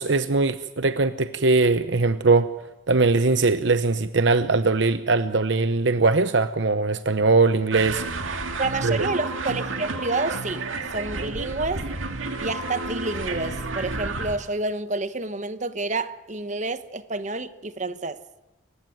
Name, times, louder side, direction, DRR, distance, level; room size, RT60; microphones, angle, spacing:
voice 1, 0.0-2.5 2.9-8.0 8.8-9.1, right 3 dB, 65° right, 0.8 m, -21 dB
sound 1, 7.7-14.4, right 3 dB, 80° right, 2.3 m, -31 dB
voice 2, 8.6-10.6 10.9-11.9 12.4-18.2, right 3 dB, 35° right, 1.1 m, -29 dB
29.5 x 15.5 x 9.3 m
head